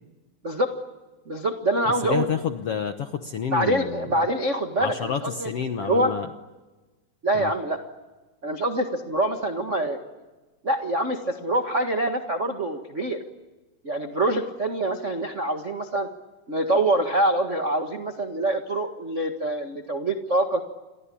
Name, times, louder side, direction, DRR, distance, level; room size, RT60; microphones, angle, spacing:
voice 1, 1.3-2.3 3.5-5.5 5.8-6.1 7.2-7.8 8.4-10.0 10.6-13.2 13.8-16.1 16.5-20.6, right 1 dB, 65° right, 3 dB, 0.7 m, -25 dB
voice 2, 2.0-4.1 4.8-6.3 7.3-7.5, left 7 dB, 70° left, 7 dB, 1.4 m, -29 dB
29.0 x 23.5 x 8.6 m, 1.2 s
omnidirectional pair, 4.3 m